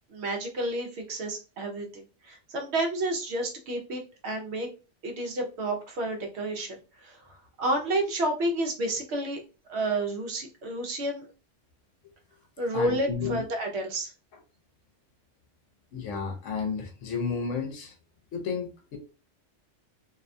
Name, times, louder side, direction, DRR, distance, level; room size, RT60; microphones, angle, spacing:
voice 1, 0.1-4.7 5.0-7.2 7.6-9.4 9.7-11.2 12.6-14.1, right 1 dB, 65° right, 0.9 m, -30 dB
voice 2, 12.7-13.4 15.9-17.9 18.3-19.0, left 5 dB, 80° left, 1.0 m, -32 dB
2.7 x 2.2 x 2.5 m
omnidirectional pair, 1.3 m